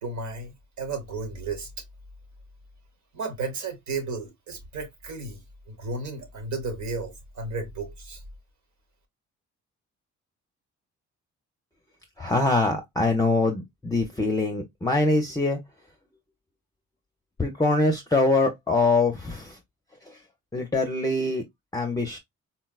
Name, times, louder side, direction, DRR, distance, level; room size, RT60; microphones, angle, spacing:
voice 1, 0.0-1.7 3.1-5.4 5.7-8.2, right 3 dB, 70° right, 1.3 m, -33 dB
voice 2, 12.2-15.6 17.4-19.5 20.5-21.4 21.7-22.2, left 2 dB, 10° left, 0.6 m, -23 dB
4.1 x 2.1 x 2.3 m
cardioid pair, 90°, 30 cm